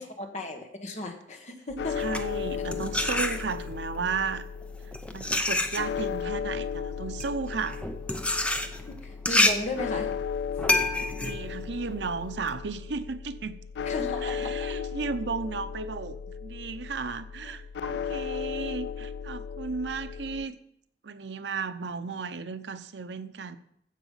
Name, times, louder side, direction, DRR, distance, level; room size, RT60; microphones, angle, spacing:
voice 1, 0.0-2.0 8.9-10.1 13.8-14.5 17.4-17.6, left 1 dB, 40° left, 4 dB, 1.5 m, -35 dB
sound 1, 1.7-20.5, left 7 dB, 70° left, 0.3 m, -35 dB
sound 2, 1.9-3.8 4.6-12.5, left 2 dB, 5° left, 0.7 m, -28 dB
voice 2, 2.0-4.4 5.1-7.8 11.2-13.6 14.2-20.6 21.0-23.6, right 4 dB, 80° right, 11 dB, 0.7 m, -34 dB
15.0 x 6.0 x 5.6 m, 0.73 s
head